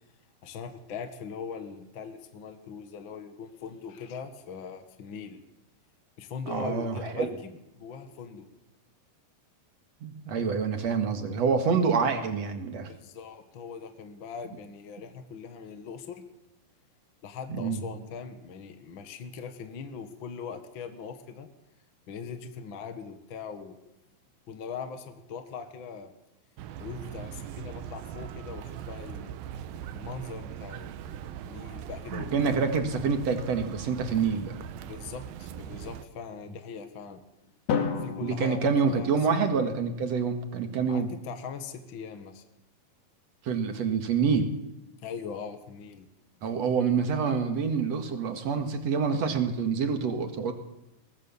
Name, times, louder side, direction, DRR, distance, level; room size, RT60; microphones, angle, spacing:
voice 1, 0.4-5.4 6.2-7.5 7.7-8.5 12.9-16.2 17.2-21.5 22.1-23.8 24.5-26.1 26.8-29.3 29.9-32.6 34.8-37.2 37.9-39.1 39.4-39.6 40.9-42.4 45.0-46.1, left 6 dB, 55° left, 8 dB, 1.3 m, -41 dB
voice 2, 6.5-7.4 10.0-12.9 17.5-17.8 32.1-34.5 38.2-41.1 43.4-44.5 46.4-50.5, right 5 dB, 50° right, 7 dB, 2.5 m, -27 dB
sound 1, 26.6-36.1, right 9 dB, 75° right, 2.6 m, -40 dB
Drum, 37.7-39.8, left 6 dB, 80° left, 4.4 m, -32 dB
23.0 x 18.5 x 7.2 m, 0.92 s
omnidirectional pair, 4.6 m